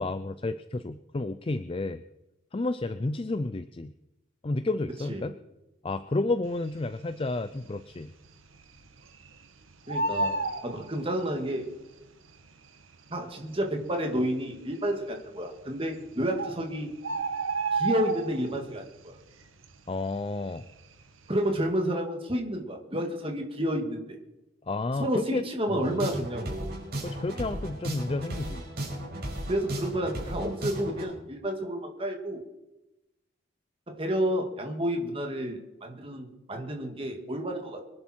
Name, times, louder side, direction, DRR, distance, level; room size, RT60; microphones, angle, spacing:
voice 1, 0.0-2.0 2.5-3.9 4.4-5.3 5.8-8.1 19.9-20.6 24.7-26.0 27.0-28.6, left 2 dB, 25° left, 12 dB, 0.4 m, -31 dB
Bird, 7.0-7.6 7.9-8.0 8.2-9.4 9.7-11.5 12.4-12.5 13.1-13.2 13.4-13.5 14.2-14.6 15.6-15.7 16.0-16.1 16.4-18.7 19.0-19.3 19.6-21.0 21.3-21.6, right 3 dB, 85° right, 1.4 m, -31 dB
voice 2, 9.9-10.3 10.6-11.7 13.1-16.9 17.7-19.1 21.3-24.0 25.0-26.7 29.5-32.4 33.9-37.8, equal, 25° right, 3 dB, 2.2 m, -30 dB
sound 1, 25.8-31.1, right 1 dB, 50° right, 5.6 m, -35 dB
24.5 x 11.0 x 4.5 m, 0.97 s
head